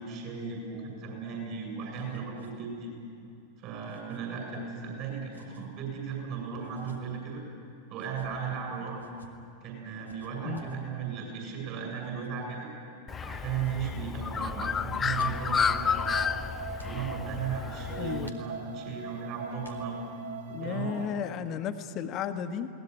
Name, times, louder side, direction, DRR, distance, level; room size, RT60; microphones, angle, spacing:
voice 1, 0.0-2.9 3.6-7.4 7.9-9.0 9.6-12.7 13.2-16.3 16.8-20.0 20.5-21.1, right 6 dB, 40° right, 1 dB, 7.5 m, -36 dB
sound 1, 1.7-2.5 2.8-3.0 3.9-4.2 5.3-5.7 6.6-7.0 7.9-8.3 9.0-9.3 10.0-10.8 12.0-12.3 12.9-13.3 13.6-13.8 14.9-15.6 16.7-17.0 18.2-18.9 19.6-20.2, right 1 dB, 80° right, 1.9 m, -53 dB
Bird, 13.1-18.3, left 6 dB, 20° left, 0.6 m, -31 dB
sound 2, 15.1-21.1, right 6 dB, 55° right, 1.6 m, -42 dB
voice 2, 18.0-18.3 20.5-22.7, left 7 dB, 35° left, 9 dB, 1.3 m, -34 dB
21.5 x 18.5 x 10.0 m, 2.5 s
figure-of-eight pair, 90°, 0 cm